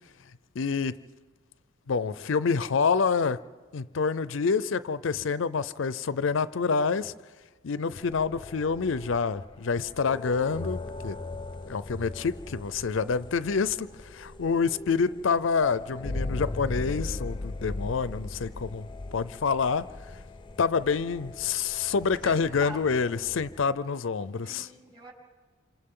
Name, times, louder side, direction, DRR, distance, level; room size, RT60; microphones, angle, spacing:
voice 1, 0.5-1.0 1.9-3.4 3.7-7.1 7.6-11.2 11.7-20.2 20.6-24.7, left 5 dB, 75° left, 0.5 m, -27 dB
sound 1, 8.0-23.7, left 2 dB, 25° left, 0.6 m, -39 dB
voice 2, 22.2-23.0 24.4-25.1, right 2 dB, 25° right, 4.0 m, -44 dB
28.0 x 27.0 x 3.8 m
head